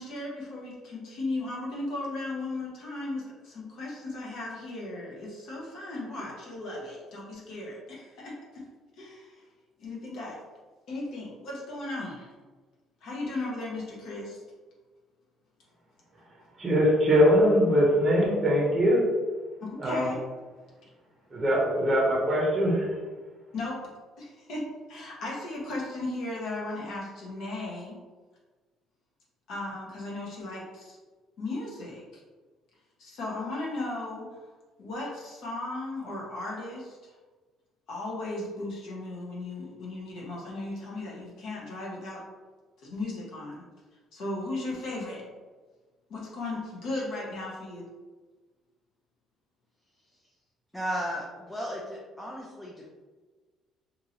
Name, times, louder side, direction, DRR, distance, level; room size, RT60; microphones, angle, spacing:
voice 1, 0.0-8.3 9.0-9.2 9.8-10.4 10.9-12.3 13.0-14.4 19.6-20.2 23.5-23.8 24.2-24.6 24.9-28.0 29.5-31.0 31.4-32.0 33.0-34.3 34.8-37.0 37.9-42.2 42.8-43.6 44.1-45.2 46.1-47.8, left 2 dB, 65° left, -4 dB, 0.9 m, -36 dB
voice 2, 16.6-19.0 19.8-20.1 21.3-23.0, equal, 20° right, -3 dB, 0.7 m, -22 dB
voice 3, 50.7-52.9, equal, 5° left, -3 dB, 0.4 m, -35 dB
2.8 x 2.6 x 2.8 m, 1.3 s
cardioid pair, 135°, 0 cm